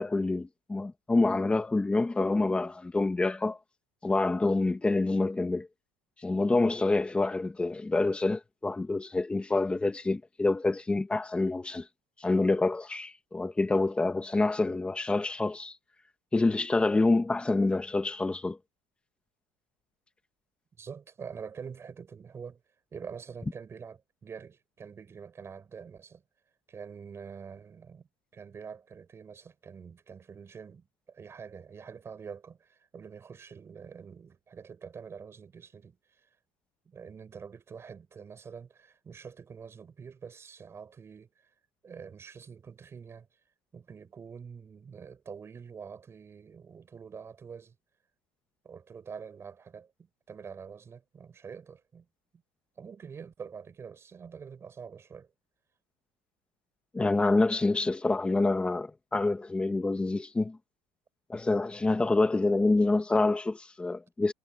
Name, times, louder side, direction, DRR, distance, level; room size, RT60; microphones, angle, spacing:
voice 1, 0.0-3.6 4.0-5.7 6.2-11.8 12.2-15.7 16.3-18.6 56.9-60.6 61.3-64.3, left 2 dB, 10° left, 1.7 m, -27 dB
voice 2, 20.8-22.6 22.9-26.2 26.7-28.1 28.3-36.3 36.8-41.3 41.8-43.3 43.7-47.7 48.6-52.1 52.8-55.3, right 6 dB, 25° right, 6.6 m, -46 dB
cardioid pair, 150°, 11 cm